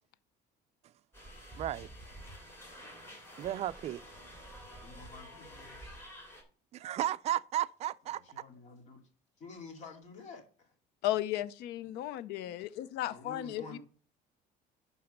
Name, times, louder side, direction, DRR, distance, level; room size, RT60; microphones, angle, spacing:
sound 1, 1.1-6.4, equal, 15° left, 3.1 m, -49 dB
voice 1, 1.6-1.9 3.4-4.0 6.7-8.2, right 12 dB, 40° right, 0.4 m, -34 dB
voice 2, 4.8-5.8 8.1-9.0 9.4-10.7 12.5-12.6 13.1-13.8, left 3 dB, 45° left, 2.4 m, -50 dB
voice 3, 11.0-13.8, left 13 dB, 75° left, 0.5 m, -35 dB
11.5 x 4.1 x 6.5 m
cardioid pair, 165°, 17 cm